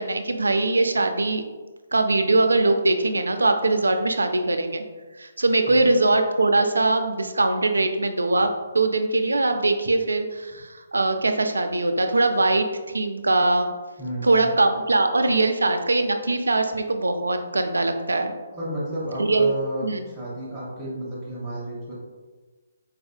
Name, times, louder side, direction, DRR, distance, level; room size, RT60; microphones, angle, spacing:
voice 1, 0.0-1.4 1.9-4.8 5.2-12.7 12.9-13.7 14.2-18.3 19.2-19.5 19.8-20.0, right 2 dB, 90° right, 7 dB, 0.3 m, -21 dB
voice 2, 14.0-14.5 18.5-21.9, equal, 10° right, -11 dB, 0.8 m, -32 dB
4.1 x 2.4 x 2.2 m, 1.3 s
hypercardioid pair, 145°, 0 cm